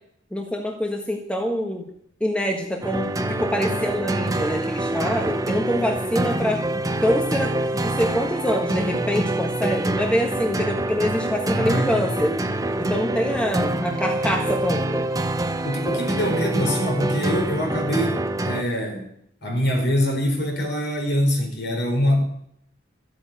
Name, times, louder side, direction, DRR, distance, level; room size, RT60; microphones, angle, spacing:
voice 1, 0.3-1.9 2.2-6.6 7.0-12.3 12.8-15.1, equal, 5° left, 2 dB, 1.4 m, -25 dB
sound 1, 2.8-18.6, right 1 dB, 20° right, 0.8 m, -25 dB
voice 2, 11.5-12.1 15.6-18.2 18.4-19.1 19.4-22.2, equal, 60° left, 2 dB, 4.6 m, -24 dB
13.5 x 8.6 x 9.0 m, 0.69 s
head